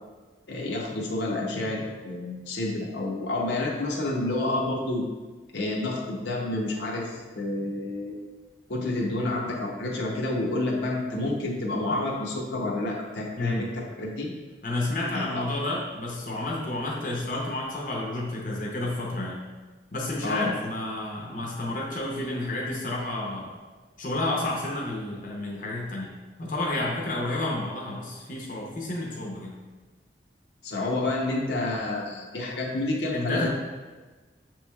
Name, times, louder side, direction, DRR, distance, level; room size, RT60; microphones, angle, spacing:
voice 1, 0.5-5.1 5.5-8.2 8.7-14.3 15.1-15.4 20.2-20.5 30.6-33.5, left 2 dB, 90° left, -2 dB, 0.7 m, -29 dB
voice 2, 14.6-19.4 19.9-23.6 24.0-26.1 26.4-29.5 33.1-33.5, left 2 dB, 50° left, -3 dB, 0.6 m, -30 dB
6.0 x 3.0 x 2.3 m, 1.3 s
head